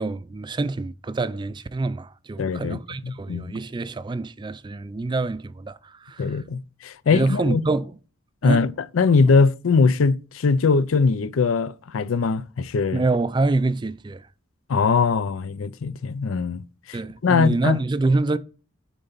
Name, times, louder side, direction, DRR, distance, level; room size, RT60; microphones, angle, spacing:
voice 1, 0.0-6.4 7.1-7.9 8.4-8.6 12.9-14.3 16.9-18.4, right 3 dB, 25° right, 0.3 m, -26 dB
voice 2, 2.4-3.6 6.2-7.6 8.4-13.0 14.7-16.6 16.9-17.8, left 4 dB, 85° left, 0.5 m, -21 dB
9.1 x 3.9 x 3.9 m
head